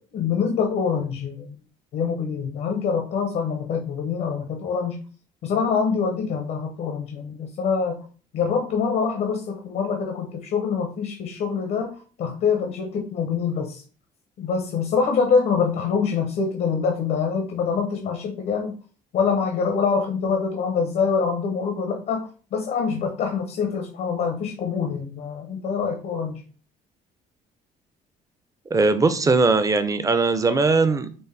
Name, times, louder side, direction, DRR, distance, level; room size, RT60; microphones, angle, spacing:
voice 1, 0.0-1.6 1.9-5.0 5.4-8.0 8.3-13.8 14.4-18.8 19.1-26.4, left 5 dB, 65° left, 0.8 m, -25 dB
voice 2, 28.7-31.2, right 3 dB, 20° right, 0.5 m, -20 dB
5.3 x 2.1 x 3.2 m
cardioid pair, 110°, 17 cm